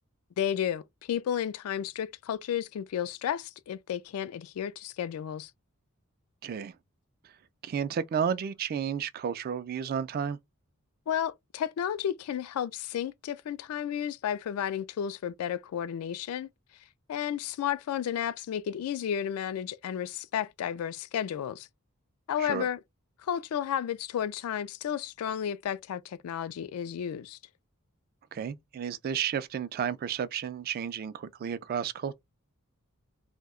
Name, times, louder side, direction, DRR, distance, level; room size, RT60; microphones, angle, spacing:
voice 1, 0.4-5.5 11.1-16.5 17.1-21.7 22.3-22.8 23.2-27.4, left 9 dB, 85° left, 0.3 m, -32 dB
voice 2, 6.4-6.7 7.6-10.4 22.4-22.7 28.3-32.1, right 7 dB, 45° right, 0.3 m, -32 dB
2.7 x 2.1 x 3.6 m
head